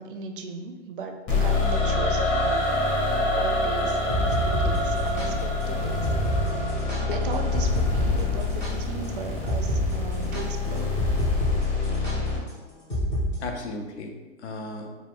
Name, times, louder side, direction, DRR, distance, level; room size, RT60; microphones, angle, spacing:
voice 1, 0.0-2.7 3.3-6.1 7.1-10.9, right 4 dB, 50° right, 5 dB, 0.5 m, -37 dB
sound 1, 1.3-12.4, left 4 dB, 35° left, 1.3 m, -28 dB
Singing / Musical instrument, 1.4-8.5, right 1 dB, 85° left, 1.3 m, -29 dB
sound 2, 3.9-11.6 11.8-12.1 12.9-13.3, left 1 dB, 10° left, 0.4 m, -28 dB
voice 2, 13.4-15.0, left 3 dB, 65° left, 3 dB, 0.8 m, -35 dB
4.5 x 2.3 x 3.8 m, 1.3 s
hypercardioid pair, 150°, 36 cm